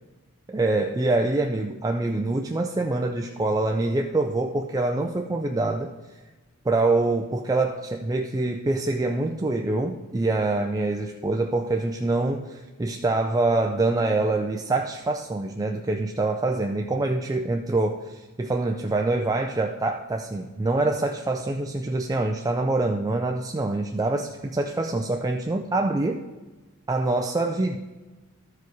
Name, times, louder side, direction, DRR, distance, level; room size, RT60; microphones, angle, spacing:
voice 1, 0.5-5.9 6.7-26.2 26.9-27.8, right 2 dB, 15° right, 3 dB, 0.4 m, -25 dB
13.5 x 4.9 x 4.6 m, 1.2 s
head